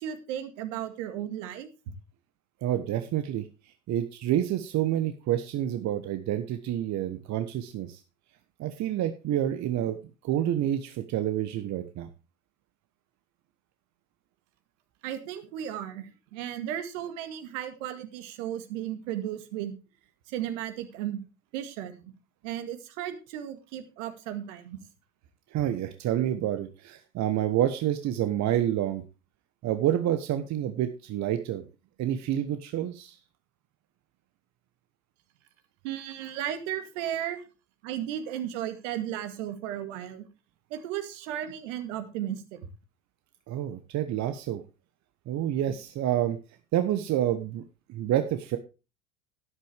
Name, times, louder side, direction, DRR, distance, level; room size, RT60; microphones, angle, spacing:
voice 1, 0.0-1.7 15.0-19.7 20.3-21.3 21.5-22.1 22.4-24.8 35.8-37.4 37.8-40.3 40.7-42.6, right 11 dB, 65° right, 8 dB, 2.1 m, -35 dB
voice 2, 2.6-3.5 3.9-8.0 8.6-10.0 10.2-12.1 25.5-29.0 29.6-31.6 32.0-33.2 43.5-44.6 45.3-46.4 46.7-47.6 47.9-48.6, right 11 dB, 40° right, 8 dB, 1.2 m, -28 dB
12.5 x 10.5 x 3.5 m, 0.31 s
hypercardioid pair, 75°, 41 cm